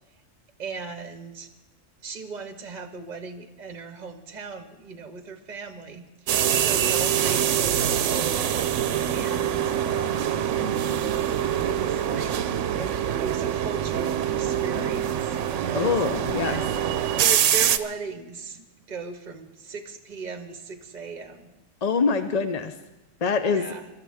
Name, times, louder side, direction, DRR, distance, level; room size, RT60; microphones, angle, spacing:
voice 1, 0.6-1.5 2.0-8.6 9.1-10.3 11.6-12.3 12.7-15.9 16.5-16.7 17.2-21.5 23.5-23.9, right 4 dB, 40° right, 7 dB, 0.9 m, -37 dB
sound 1, 6.3-17.8, right 9 dB, 75° right, 1.0 m, -24 dB
voice 2, 15.7-16.6 21.8-22.7 23.2-23.7, left 5 dB, 45° left, 8 dB, 0.5 m, -24 dB
24.5 x 12.5 x 3.4 m, 1.0 s
omnidirectional pair, 1.3 m